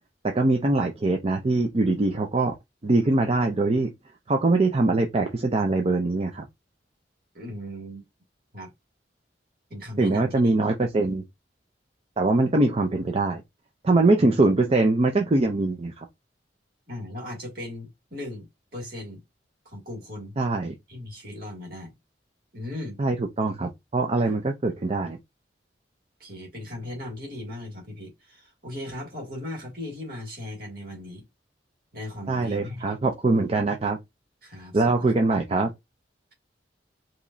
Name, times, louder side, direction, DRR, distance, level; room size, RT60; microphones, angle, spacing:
voice 1, 0.2-2.5 2.8-3.9 4.3-6.4 10.0-11.2 12.2-13.4 13.8-16.1 20.4-20.7 23.0-25.2 32.3-34.0 34.7-35.7, right 2 dB, 35° right, 0.5 m, -23 dB
voice 2, 7.3-8.0 8.5-8.7 9.7-10.5 14.2-14.3 16.9-19.2 19.7-20.4 20.9-21.9 22.5-23.0 24.2-24.4 26.2-31.3 31.9-32.8 34.4-35.1, left 1 dB, 55° right, 2.2 m, -38 dB
5.1 x 3.0 x 2.6 m
head